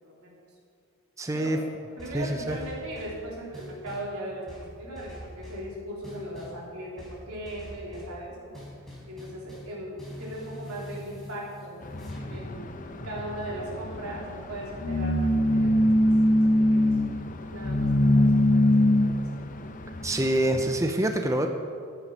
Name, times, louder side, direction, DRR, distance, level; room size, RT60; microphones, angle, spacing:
voice 1, 0.0-0.4 1.3-1.6 2.0-8.6 9.1-11.8 12.3-17.1 17.5-19.5, right 1 dB, 85° right, -4 dB, 3.5 m, -39 dB
voice 2, 1.2-1.6 2.1-2.6 20.0-21.5, right 1 dB, 15° right, 5 dB, 0.6 m, -26 dB
sound 1, 2.0-3.2 3.5-4.1 4.5-5.7 6.0-6.6 7.0-8.2 8.5-12.5, equal, ahead, 3.7 m, -43 dB
sound 2, 11.8-20.8, left 1 dB, 35° left, 0.7 m, -24 dB
13.5 x 9.1 x 5.5 m, 2.4 s
head